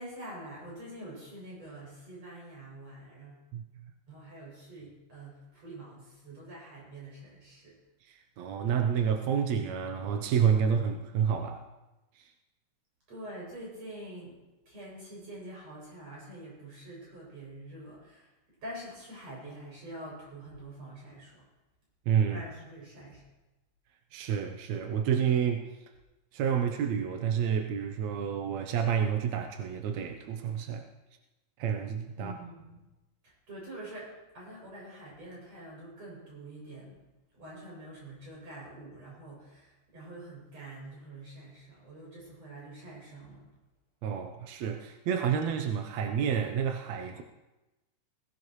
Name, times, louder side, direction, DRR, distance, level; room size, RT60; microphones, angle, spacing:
voice 1, 0.0-3.4 4.1-7.8 13.1-14.4 14.7-18.3 18.6-21.4 22.3-23.2 32.2-32.8 33.2-37.0 37.3-43.5, right 1 dB, 50° right, -5 dB, 8.4 m, -46 dB
voice 2, 8.0-11.7 12.2-12.3 22.1-22.4 24.1-25.6 26.3-30.9 31.6-32.4 44.0-47.2, right 7 dB, 70° right, 5 dB, 1.8 m, -29 dB
21.0 x 17.0 x 3.2 m, 1.0 s
omnidirectional pair, 3.8 m